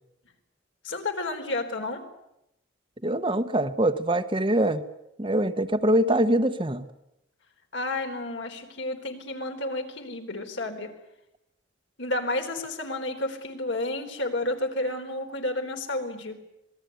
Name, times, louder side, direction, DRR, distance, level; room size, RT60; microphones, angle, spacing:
voice 1, 0.8-2.0 7.7-10.9 12.0-16.4, left 2 dB, 70° left, 4 dB, 3.9 m, -31 dB
voice 2, 3.0-4.8 5.2-6.9, right 1 dB, 25° right, 9 dB, 1.0 m, -23 dB
26.5 x 19.5 x 9.3 m, 0.86 s
head